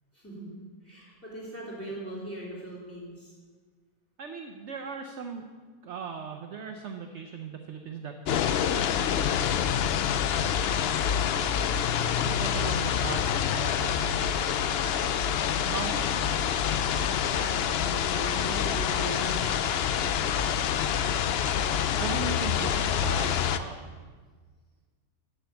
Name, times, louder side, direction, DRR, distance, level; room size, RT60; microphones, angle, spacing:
voice 1, 0.1-0.5 0.8-3.3 9.6-10.0 17.4-19.7, right 1 dB, 10° left, -6 dB, 3.8 m, -40 dB
voice 2, 4.2-5.4 5.8-8.9 12.2-14.6 15.7-16.4 22.0-24.0, right 5 dB, 55° right, 4 dB, 0.9 m, -38 dB
sound 1, 8.3-23.6, left 8 dB, 85° left, 0.5 m, -27 dB
9.6 x 7.6 x 7.0 m, 1.5 s
omnidirectional pair, 1.6 m